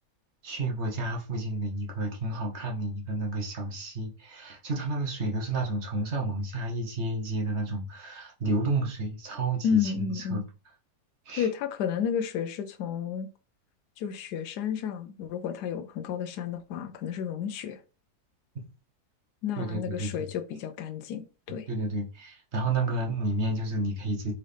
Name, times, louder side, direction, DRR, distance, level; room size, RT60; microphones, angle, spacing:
voice 1, 0.4-10.4 11.3-11.5 18.5-18.6 19.6-20.3 21.5-24.3, right 2 dB, 50° right, 1.2 m, -31 dB
voice 2, 9.6-10.4 11.3-13.3 14.0-17.8 19.4-21.7, left 8 dB, 85° left, 1.2 m, -31 dB
4.2 x 3.7 x 3.3 m
omnidirectional pair, 1.7 m